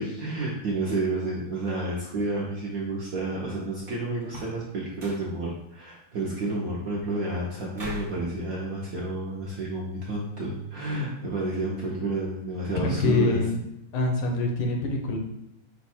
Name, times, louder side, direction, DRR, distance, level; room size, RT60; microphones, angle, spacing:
voice 1, 0.0-13.4, right 2 dB, 70° right, -4 dB, 0.8 m, -30 dB
sound 1, 4.2-4.6 4.9-5.3 7.7-8.2, equal, 40° right, 0.9 m, -39 dB
voice 2, 12.8-13.6 13.9-15.2, left 2 dB, 85° left, 2 dB, 1.7 m, -25 dB
5.2 x 2.2 x 4.2 m, 0.82 s
omnidirectional pair, 2.4 m